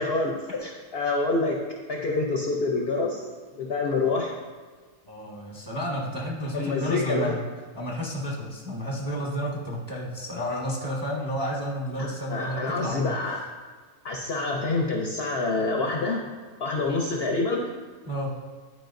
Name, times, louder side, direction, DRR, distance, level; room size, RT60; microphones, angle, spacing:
voice 1, 0.0-1.6 1.9-3.2 3.5-4.3 6.5-7.3 12.0-13.4 14.0-16.2 16.6-17.6, left 3 dB, 55° left, 0 dB, 0.7 m, -27 dB
voice 2, 5.1-7.4 7.7-13.2 18.1-18.3, equal, 15° right, -4 dB, 0.8 m, -31 dB
11.0 x 4.8 x 2.6 m, 1.5 s
omnidirectional pair, 1.6 m